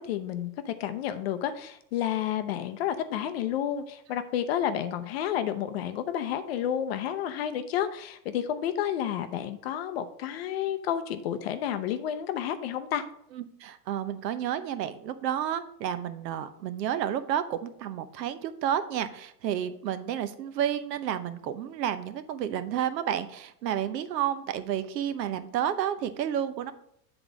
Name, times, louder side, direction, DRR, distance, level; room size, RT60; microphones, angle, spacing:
voice 1, 0.0-13.0, left 10 dB, 40° left, 10 dB, 0.5 m, -30 dB
voice 2, 13.3-26.7, right 10 dB, 85° right, 11 dB, 0.9 m, -31 dB
7.9 x 3.9 x 4.8 m, 0.72 s
supercardioid pair, 155°, 48 cm